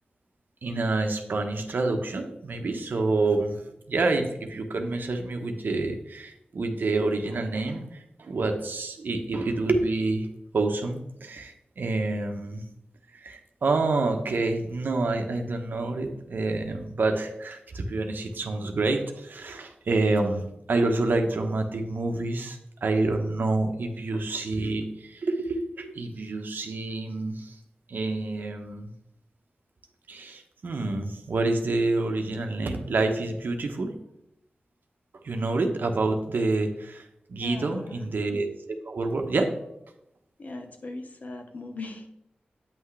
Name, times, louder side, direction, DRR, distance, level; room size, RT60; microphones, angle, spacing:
voice 1, 0.6-10.3 10.5-12.6 13.1-27.5 27.9-28.9 30.1-33.9 35.2-38.5 38.8-39.5, right 3 dB, 75° right, 5 dB, 0.9 m, -28 dB
voice 2, 37.4-38.0 40.4-42.1, left 2 dB, 50° left, 5 dB, 1.0 m, -39 dB
8.8 x 5.9 x 3.3 m, 0.81 s
wide cardioid pair, 100°, 3 cm